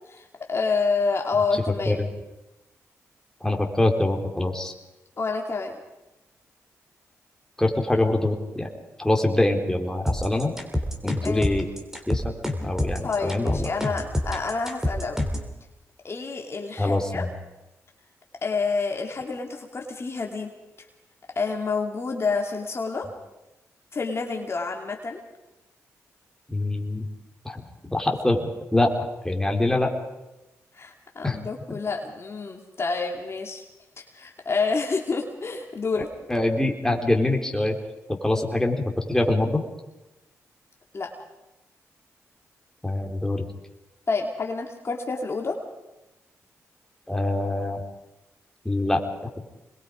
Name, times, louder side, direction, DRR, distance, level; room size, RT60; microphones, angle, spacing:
voice 1, 0.1-2.0 5.2-5.8 11.2-11.5 13.0-15.2 16.0-17.3 18.4-20.5 21.3-23.1 23.9-25.2 30.7-33.6 34.0-36.1 40.9-41.1 44.1-45.6, left 4 dB, 45° left, 2 dB, 2.7 m, -28 dB
voice 2, 3.4-4.7 7.6-8.7 9.0-10.5 11.0-11.7 12.1-12.2 12.6-13.7 16.8-17.3 26.5-27.1 27.5-27.7 27.9-28.9 29.2-29.9 31.2-31.4 31.7-31.8 35.9-36.0 36.3-37.8 38.1-38.8 39.1-39.6 42.8-43.5 47.1-47.8 48.7-49.0, left 1 dB, 10° left, 2 dB, 3.6 m, -24 dB
sound 1, 10.1-15.5, left 1 dB, 5° right, 3.8 m, -27 dB
24.0 x 21.5 x 5.1 m, 0.98 s
supercardioid pair, 55°, 6 cm